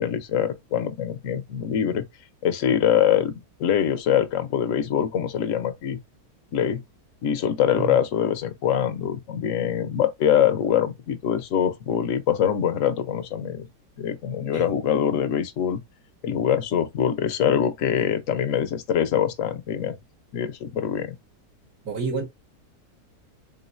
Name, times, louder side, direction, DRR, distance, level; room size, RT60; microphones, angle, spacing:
voice 1, 0.0-2.0 2.4-6.0 6.5-6.8 7.2-13.7 14.0-15.8 16.2-20.0 20.3-21.1, left 9 dB, 60° left, 1.0 m, -24 dB
voice 2, 21.8-22.3, right 4 dB, 70° right, 2.0 m, -29 dB
3.8 x 3.7 x 2.5 m
omnidirectional pair, 1.7 m